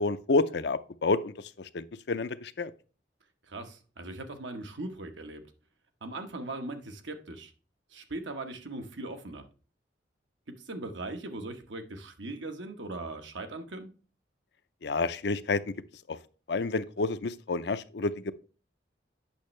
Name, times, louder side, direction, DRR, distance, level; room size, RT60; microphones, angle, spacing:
voice 1, 0.0-2.7 14.8-15.7 16.1-16.2 16.5-18.3, left 3 dB, 65° left, 0.5 m, -29 dB
voice 2, 3.4-5.4 6.0-7.5 7.9-9.5 10.6-13.9, right 2 dB, 80° right, 1.2 m, -39 dB
8.6 x 6.3 x 3.2 m
head